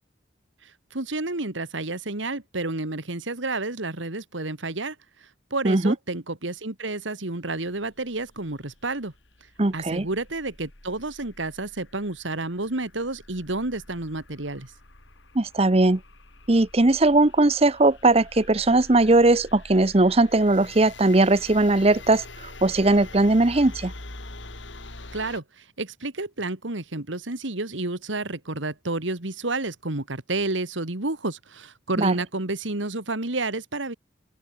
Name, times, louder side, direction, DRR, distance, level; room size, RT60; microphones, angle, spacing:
voice 1, 0.6-5.0 5.2-9.1 9.7-14.7 25.1-33.9, right 2 dB, 80° right, 2.3 m, -30 dB
voice 2, 5.6-5.9 9.6-10.1 15.3-16.0 16.5-23.9 32.0-32.1, right 2 dB, 30° right, 0.8 m, -19 dB
sound 1, 7.7-25.4, left 2 dB, 75° left, 4.1 m, -45 dB
open air
head